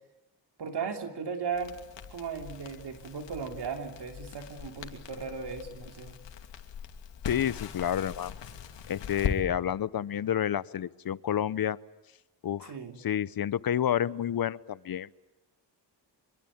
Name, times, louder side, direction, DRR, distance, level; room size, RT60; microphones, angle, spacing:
voice 1, 0.6-1.7 2.1-6.1 12.6-13.0, right 5 dB, 65° right, 5 dB, 3.2 m, -36 dB
Crackle, 1.5-9.4, left 8 dB, 85° left, 2.7 m, -40 dB
voice 2, 7.3-8.4 8.9-11.8 12.4-12.7 13.0-15.1, left 10 dB, 55° left, 19 dB, 0.8 m, -29 dB
25.5 x 23.0 x 8.7 m, 0.98 s
cardioid pair, 80°, 43 cm